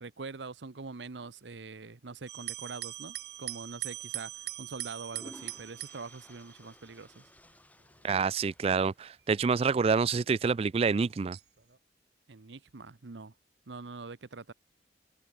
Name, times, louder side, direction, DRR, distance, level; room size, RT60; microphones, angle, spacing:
voice 1, 0.0-7.3 12.3-13.3 13.7-14.5, right 4 dB, 80° right, 0.9 m, -44 dB
sound 1, 2.3-7.0 7.8-8.3 9.0-9.1 11.3-11.8, right 15 dB, 65° right, 1.2 m, -41 dB
sound 2, 5.0-9.4, left 1 dB, 10° left, 2.3 m, -56 dB
voice 2, 8.0-11.4, right 5 dB, 35° right, 0.3 m, -27 dB
head